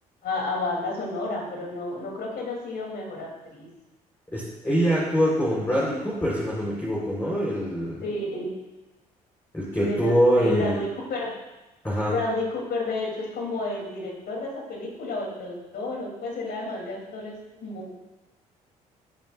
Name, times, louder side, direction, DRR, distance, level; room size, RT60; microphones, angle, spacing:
voice 1, 0.2-3.7 8.0-8.6 9.8-11.3 12.1-17.3 17.6-18.0, left 2 dB, 60° left, 0 dB, 3.1 m, -31 dB
voice 2, 4.3-8.0 9.5-10.8 11.8-12.1, equal, 10° left, -7 dB, 4.0 m, -24 dB
16.5 x 9.2 x 2.5 m, 1.0 s
hypercardioid pair, 50°, 19 cm